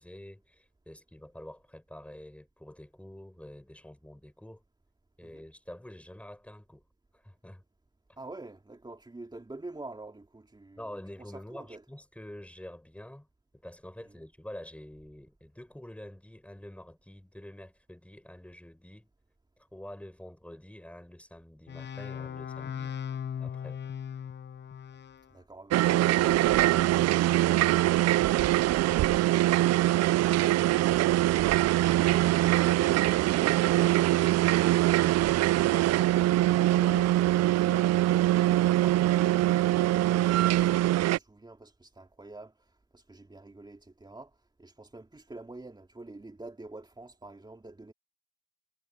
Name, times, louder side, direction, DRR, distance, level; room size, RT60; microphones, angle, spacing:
voice 1, 0.0-4.6 5.2-6.9 7.1-7.6 8.1-8.2 10.8-13.3 13.5-19.1 19.6-23.0 23.4-23.8, left 1 dB, 5° left, 6.0 m, -47 dB
voice 2, 8.2-10.8 11.2-11.8 14.0-14.1 25.3-47.9, right 2 dB, 15° right, 3.3 m, -47 dB
sound 1, 21.7-25.3, left 8 dB, 35° left, 0.8 m, -38 dB
sound 2, 25.7-41.2, right 15 dB, 55° right, 0.5 m, -23 dB
supercardioid pair, 75°, 31 cm